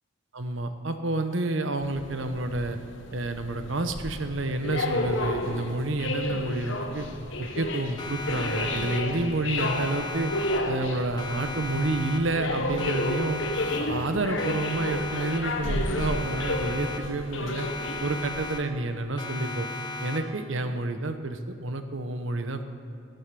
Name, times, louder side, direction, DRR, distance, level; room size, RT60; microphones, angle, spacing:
voice 1, 0.3-2.8 3.1-7.1 7.4-10.3 10.6-13.4 13.8-17.7 18.0-19.7 20.0-22.6, right 2 dB, 70° right, 8 dB, 1.0 m, -29 dB
sound 1, 1.8-18.5, left 2 dB, 70° left, 1.2 m, -32 dB
Siren, 8.0-9.3 9.6-10.9 11.2-12.5 12.8-14.1 14.4-15.7 16.0-17.3 17.6-18.9 19.2-20.5, left 2 dB, 20° left, 1.0 m, -36 dB
20.5 x 8.0 x 6.8 m, 2.4 s
head